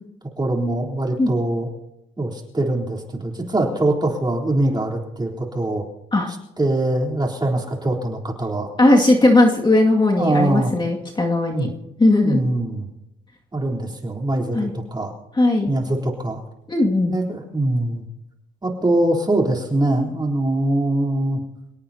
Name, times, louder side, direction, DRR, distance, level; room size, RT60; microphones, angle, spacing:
voice 1, 0.4-1.7 2.2-5.8 6.6-8.7 10.2-10.7 11.5-11.7 12.2-12.9 13.5-15.1 15.7-16.4 17.1-18.0 18.6-21.4, right 1 dB, 20° right, 0 dB, 3.8 m, -22 dB
voice 2, 8.8-11.7 12.0-12.4 14.5-14.7 15.3-15.7 16.7-17.1, left 2 dB, 25° left, 0 dB, 2.3 m, -17 dB
27.5 x 18.0 x 2.9 m, 0.93 s
cardioid pair, 90°, 20 cm